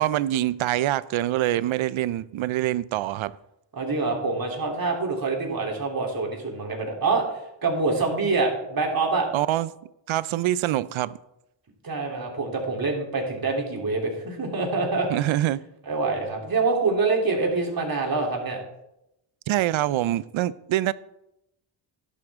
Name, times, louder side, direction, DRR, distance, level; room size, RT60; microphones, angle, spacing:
voice 1, 0.0-3.3 9.3-9.7 10.1-11.2 15.1-15.6 19.5-20.9, right 13 dB, 70° right, 0.6 m, -25 dB
voice 2, 3.8-9.3 11.8-15.1 15.9-18.6, right 3 dB, 45° right, 3.4 m, -25 dB
12.5 x 11.0 x 3.7 m
cardioid pair, 75°, 49 cm